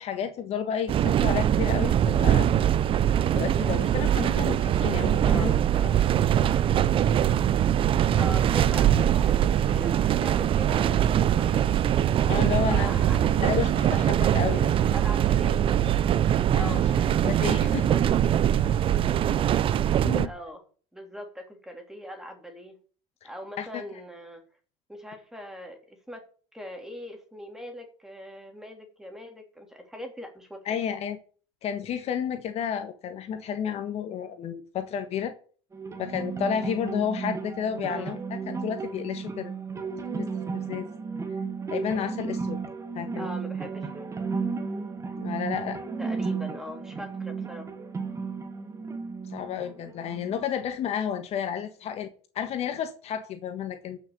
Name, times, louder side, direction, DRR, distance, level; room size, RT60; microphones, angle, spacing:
voice 1, 0.0-2.5 3.3-5.6 5.8-5.9 12.3-13.0 13.4-14.7 16.5-16.8 17.2-17.9 20.0-20.3 23.2-23.3 23.6-23.8 30.6-31.2 31.6-35.3 36.0-39.5 40.2-40.3 40.5-40.9 41.7-42.6 42.9-43.3 45.1-45.8 49.2-54.0, left 8 dB, 45° left, 8 dB, 1.5 m, -31 dB
sound 1, 0.9-20.3, right 10 dB, 40° right, 0.7 m, -22 dB
voice 2, 5.2-5.8 8.1-11.7 12.5-13.5 14.4-15.6 16.5-17.4 17.9-18.1 20.2-20.6 20.9-22.7 23.2-24.4 24.9-26.2 26.5-30.6 37.9-38.1 43.1-44.2 46.0-47.7, equal, 5° right, 4 dB, 3.4 m, -41 dB
sound 2, 35.7-50.7, right 5 dB, 20° right, 1.8 m, -34 dB
14.0 x 6.3 x 6.9 m, 0.42 s
supercardioid pair, 115°, 14 cm